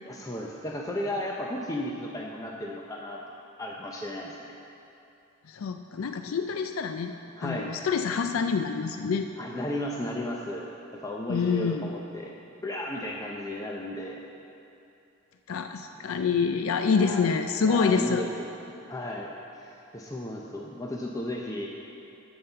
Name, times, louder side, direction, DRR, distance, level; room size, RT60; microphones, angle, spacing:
voice 1, 0.0-3.2 3.6-4.4 7.4-7.7 9.4-10.7 11.0-12.3 12.6-14.2 16.9-17.3 17.6-18.5 18.9-19.3 19.6-21.7, left 1 dB, 15° left, -1 dB, 0.6 m, -34 dB
voice 2, 5.5-7.1 7.4-9.3 11.3-11.9 15.5-18.3, left 5 dB, 85° left, 7 dB, 0.4 m, -27 dB
13.0 x 5.6 x 6.7 m, 2.8 s
head